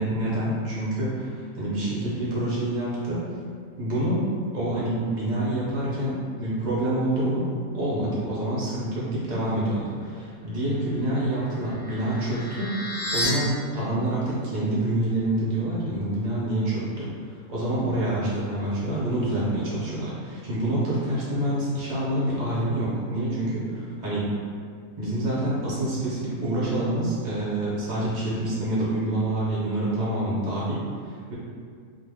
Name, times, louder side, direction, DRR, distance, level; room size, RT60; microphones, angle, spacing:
voice 1, 0.0-3.2 3.8-4.3 4.5-7.5 7.7-12.8 13.1-17.1 17.5-24.3 25.0-31.3, right 1 dB, 45° right, -8 dB, 0.6 m, -27 dB
sound 1, 11.0-13.3, left 1 dB, 55° left, 0.9 m, -33 dB
2.4 x 2.1 x 3.4 m, 2.1 s
omnidirectional pair, 1.6 m